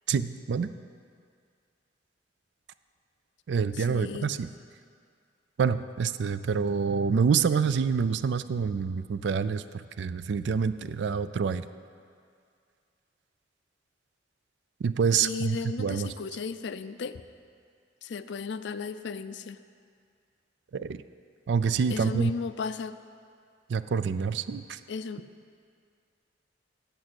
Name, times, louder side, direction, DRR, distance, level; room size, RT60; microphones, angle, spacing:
voice 1, 0.1-0.7 3.5-4.5 5.6-9.6 10.0-11.6 14.8-16.1 20.7-21.0 21.5-22.3 23.7-24.8, right 6 dB, 70° right, 13 dB, 0.4 m, -27 dB
voice 2, 3.7-4.3 15.2-17.2 18.0-19.6 21.9-23.0 24.9-25.3, left 5 dB, 70° left, 12 dB, 0.4 m, -35 dB
8.8 x 6.9 x 7.7 m, 2.3 s
head